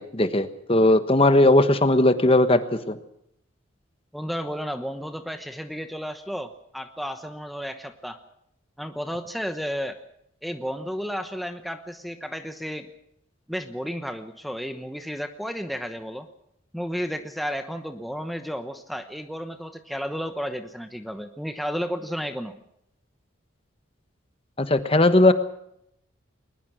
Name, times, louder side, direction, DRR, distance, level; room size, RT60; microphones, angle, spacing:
voice 1, 0.0-3.0 24.6-25.3, left 2 dB, 30° left, 10 dB, 1.3 m, -18 dB
voice 2, 4.1-8.2 8.8-10.0 10.4-12.9 13.5-16.3 16.7-22.6, equal, ahead, 6 dB, 1.0 m, -32 dB
21.5 x 20.5 x 6.2 m, 0.75 s
head